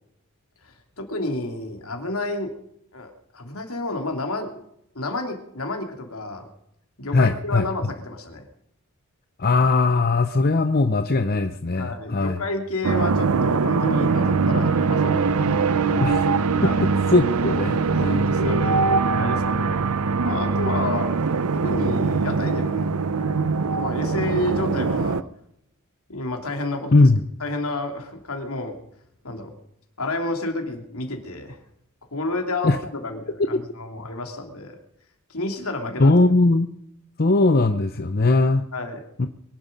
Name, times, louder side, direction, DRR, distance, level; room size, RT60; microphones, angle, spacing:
voice 1, 0.6-2.5 2.9-4.6 4.9-6.4 7.0-8.4 11.8-15.6 16.6-16.8 17.9-18.8 19.1-19.8 20.2-21.2 21.5-23.0 23.7-25.2 26.1-27.0 27.4-28.7 29.2-29.5 30.0-31.6 32.1-34.8 35.3-36.2 38.7-39.0, left 2 dB, 75° left, 4 dB, 3.0 m, -30 dB
voice 2, 7.1-7.7 9.4-12.4 16.0-16.3 16.6-18.2 26.9-27.2 32.6-32.8 33.5-33.6 36.0-36.7 37.2-38.6, left 2 dB, 45° left, 8 dB, 0.8 m, -19 dB
sound 1, 12.8-25.2, right 4 dB, 80° right, 0.7 m, -22 dB
23.0 x 11.5 x 5.3 m, 0.78 s
head